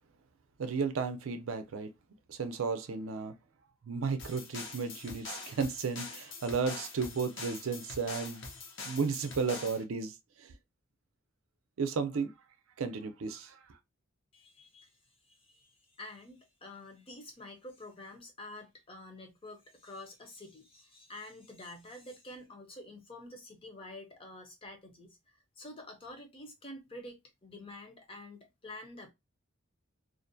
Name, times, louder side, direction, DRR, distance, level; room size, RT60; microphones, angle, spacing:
voice 1, 0.6-1.9 2.3-3.4 3.8-8.5 8.8-10.5 11.8-12.3 12.8-13.6, right 5 dB, 80° right, 0.5 m, -34 dB
sound 1, 4.2-9.8, left 3 dB, 60° left, 0.7 m, -44 dB
voice 2, 14.3-14.9 15.3-29.1, left 1 dB, 25° left, 0.5 m, -48 dB
2.5 x 2.1 x 2.6 m
head